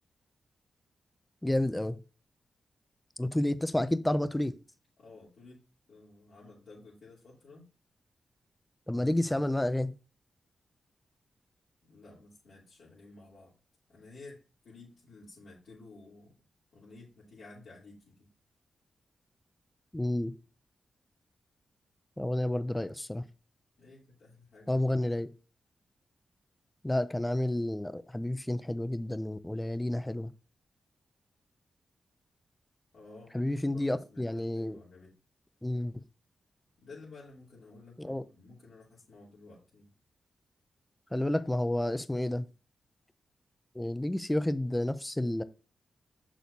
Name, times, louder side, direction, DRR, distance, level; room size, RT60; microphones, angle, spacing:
voice 1, 1.4-2.0 3.2-4.5 8.9-9.9 19.9-20.3 22.2-23.2 24.7-25.3 26.8-30.3 33.3-34.8 35.6-36.0 38.0-38.2 41.1-42.5 43.7-45.4, left 1 dB, 10° left, 0.5 m, -30 dB
voice 2, 5.0-5.6 5.9-7.6 11.8-13.6 13.9-16.3 16.7-18.3 23.8-24.9 32.9-35.2 36.8-39.9, left 3 dB, 75° left, 3.0 m, -53 dB
6.8 x 6.1 x 2.7 m
cardioid pair, 90°, 0 cm